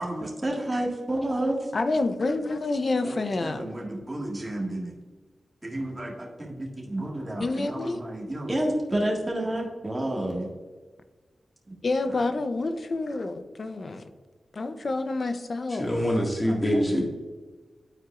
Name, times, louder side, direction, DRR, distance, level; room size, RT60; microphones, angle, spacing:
voice 1, 0.0-1.7 3.0-4.9 5.6-10.5 11.7-11.8 12.1-12.2 16.4-16.8, right 1 dB, 25° right, -1 dB, 1.8 m, -30 dB
voice 2, 1.7-3.8 7.4-8.0 11.8-14.0 14.5-15.9, left 3 dB, 55° left, 9 dB, 0.6 m, -28 dB
voice 3, 15.7-17.0, equal, 25° left, 0 dB, 1.9 m, -24 dB
9.8 x 4.6 x 2.5 m, 1.3 s
cardioid pair, 60°, 0 cm